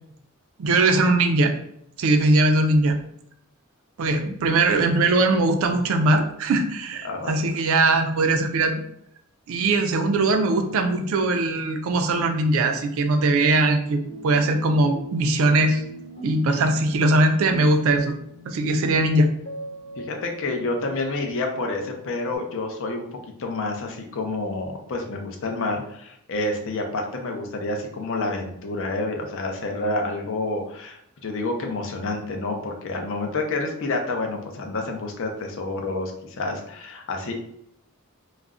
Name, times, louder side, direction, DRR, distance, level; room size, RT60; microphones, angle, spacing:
voice 1, 0.6-1.5 2.0-3.0 4.0-8.8 9.5-15.8 16.2-18.2 18.5-19.3, right 2 dB, 65° right, 6 dB, 0.4 m, -20 dB
voice 2, 7.0-7.3 20.0-23.1 23.4-36.1 36.4-37.3, left 2 dB, 60° left, 3 dB, 0.5 m, -28 dB
sound 1, 14.0-22.4, equal, 80° left, 1.1 m, -40 dB
2.4 x 2.0 x 3.5 m, 0.73 s
head